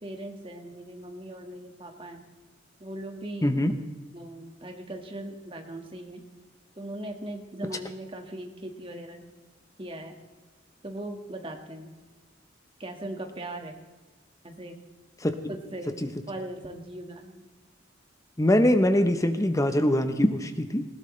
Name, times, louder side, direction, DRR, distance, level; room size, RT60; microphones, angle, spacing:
voice 1, 0.0-2.3 2.8-3.5 4.1-6.2 6.8-9.2 9.8-10.1 10.8-11.9 12.8-13.7 14.4-14.8 15.5-15.9 16.3-17.4, right 1 dB, 25° right, 3 dB, 1.7 m, -39 dB
voice 2, 3.4-3.7 15.2-15.4 18.4-20.9, left 1 dB, 15° left, 8 dB, 0.8 m, -22 dB
19.5 x 16.0 x 3.2 m, 1.3 s
head